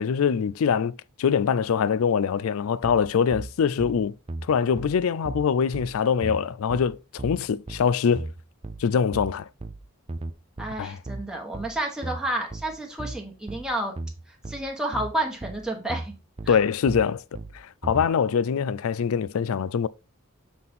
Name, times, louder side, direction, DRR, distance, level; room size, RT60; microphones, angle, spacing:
voice 1, 0.0-4.1 4.5-8.3 8.8-9.5 10.8-11.0 16.5-17.2 17.5-19.9, left 6 dB, 75° left, 0.4 m, -23 dB
sound 1, 2.8-18.1, right 2 dB, 25° right, 0.5 m, -37 dB
voice 2, 10.6-13.9 14.5-16.1 16.4-16.6, right 1 dB, 5° right, 1.3 m, -30 dB
7.6 x 4.1 x 3.6 m
head